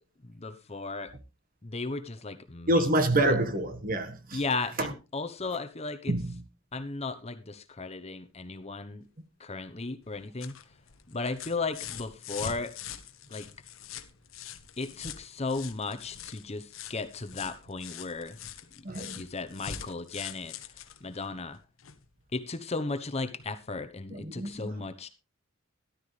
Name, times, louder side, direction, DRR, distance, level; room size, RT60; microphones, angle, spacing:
voice 1, 0.2-1.1 1.6-2.9 3.2-3.3 4.3-6.1 6.7-9.1 9.4-10.6 11.1-12.7 13.3-13.5 14.8-18.4 18.9-21.6 22.3-25.1, left 3 dB, 30° left, 1.0 m, -35 dB
voice 2, 2.7-4.4 4.8-4.9 6.1-6.3 18.8-19.2 24.1-24.9, right 1 dB, 45° right, 1.5 m, -27 dB
sound 1, 10.0-22.1 23.4-23.5, left 8 dB, 75° left, 1.1 m, -44 dB
13.5 x 12.0 x 3.3 m
head